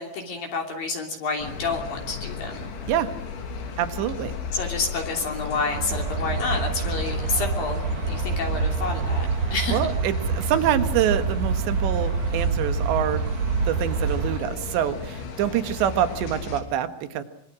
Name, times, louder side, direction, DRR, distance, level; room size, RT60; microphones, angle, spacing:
voice 1, 0.0-2.7 4.5-9.8, left 3 dB, 55° left, 2 dB, 4.5 m, -29 dB
sound 1, 1.4-16.6, left 5 dB, 90° left, 5.4 m, -35 dB
voice 2, 3.8-4.3 9.7-13.2 13.7-17.2, right 10 dB, 80° right, 9 dB, 3.8 m, -26 dB
sound 2, 5.7-14.4, right 5 dB, 60° right, 2.3 m, -27 dB
25.5 x 25.0 x 6.4 m, 0.65 s
omnidirectional pair, 5.1 m